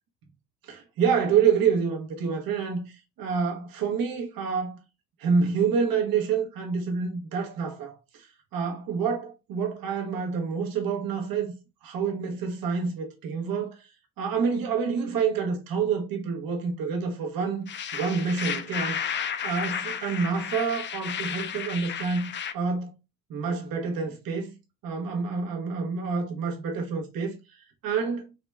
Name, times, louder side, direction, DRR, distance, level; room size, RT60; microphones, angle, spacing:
voice 1, 0.6-4.8 5.2-11.5 11.8-13.9 14.2-19.1 19.4-22.9 23.3-24.6 24.8-27.4 27.8-28.3, right 6 dB, 75° right, 1.2 m, -28 dB
sound 1, 17.7-22.5, left 8 dB, 35° left, 0.4 m, -33 dB
3.9 x 3.3 x 3.4 m
cardioid pair, 135°, 35 cm